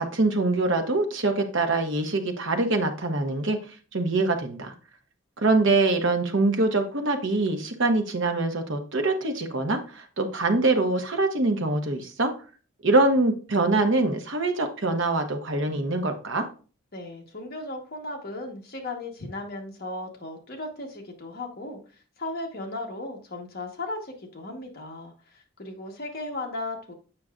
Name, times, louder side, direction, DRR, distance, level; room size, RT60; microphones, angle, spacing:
voice 1, 0.0-3.6 3.9-4.7 5.4-12.3 12.8-16.5, right 2 dB, 60° right, 5 dB, 1.0 m, -24 dB
voice 2, 16.9-21.8 22.2-26.9, left 2 dB, 45° left, 2 dB, 1.2 m, -36 dB
7.7 x 5.7 x 2.4 m, 0.37 s
head